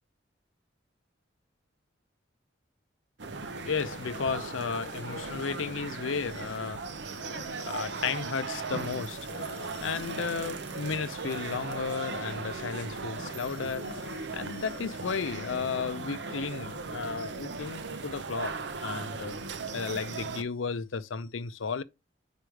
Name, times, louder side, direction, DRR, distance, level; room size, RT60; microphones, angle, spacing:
sound 1, 3.2-20.4, right 4 dB, 65° right, 0.7 m, -38 dB
voice 1, 3.4-21.8, left 5 dB, 90° left, 0.6 m, -34 dB
5.1 x 5.0 x 4.6 m
head